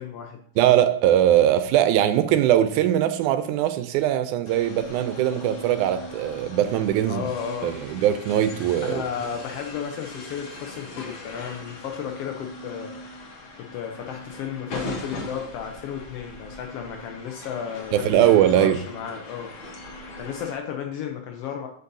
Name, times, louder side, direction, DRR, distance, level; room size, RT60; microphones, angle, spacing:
voice 1, 0.0-0.4 7.1-7.8 8.8-13.0 13.6-19.5 20.2-21.7, left 8 dB, 85° left, 3 dB, 1.3 m, -33 dB
voice 2, 0.6-7.3 7.6-9.0 17.9-18.8, right 11 dB, 85° right, 10 dB, 2.0 m, -21 dB
sound 1, 4.4-20.5, left 1 dB, 60° left, 1.3 m, -39 dB
8.2 x 5.3 x 2.6 m, 0.64 s
omnidirectional pair, 3.5 m